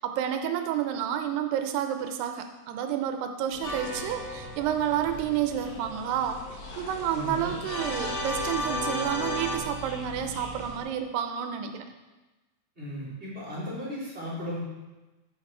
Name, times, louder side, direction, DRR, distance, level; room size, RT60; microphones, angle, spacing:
voice 1, 0.0-11.9, right 10 dB, 90° right, 7 dB, 2.7 m, -30 dB
sound 1, 3.5-10.8, left 1 dB, 85° left, 3.9 m, -41 dB
sound 2, 3.6-5.1 7.7-9.6, left 1 dB, 70° left, 4.0 m, -33 dB
voice 2, 7.1-7.6 12.7-14.6, equal, 15° right, -8 dB, 3.4 m, -36 dB
10.0 x 8.0 x 4.6 m, 1.1 s
omnidirectional pair, 4.8 m